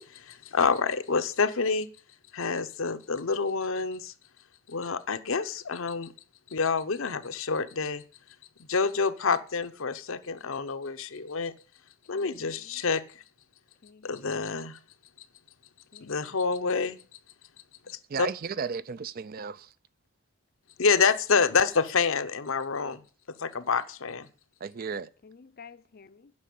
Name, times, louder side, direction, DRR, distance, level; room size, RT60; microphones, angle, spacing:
voice 1, 0.0-1.9 2.3-4.1 4.7-6.1 6.5-8.0 8.7-11.5 12.1-13.0 14.0-14.8 16.0-17.0 17.9-18.3 20.8-23.0 23.4-24.3, left 5 dB, 65° left, 0.8 m, -27 dB
voice 2, 12.1-12.8 13.8-14.2 15.9-16.4 17.8-17.9 25.2-26.3, left 5 dB, 45° left, 0.5 m, -52 dB
voice 3, 18.1-19.7 24.6-25.1, right 5 dB, 45° right, 0.4 m, -34 dB
9.6 x 6.2 x 8.5 m
head